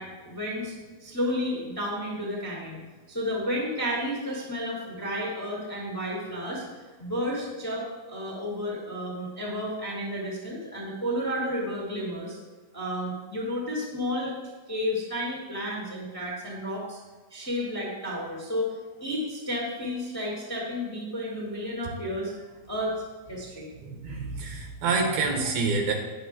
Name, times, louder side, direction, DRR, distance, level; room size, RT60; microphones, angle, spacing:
voice 1, 0.0-2.8 3.1-6.6 7.0-12.4 12.7-14.3 14.7-17.0 17.3-18.7 19.0-23.0 23.3-23.7, equal, 10° left, -4 dB, 1.1 m, -32 dB
voice 2, 23.8-25.9, right 4 dB, 85° right, 1 dB, 3.2 m, -27 dB
19.5 x 6.6 x 2.3 m, 1.4 s
omnidirectional pair, 4.1 m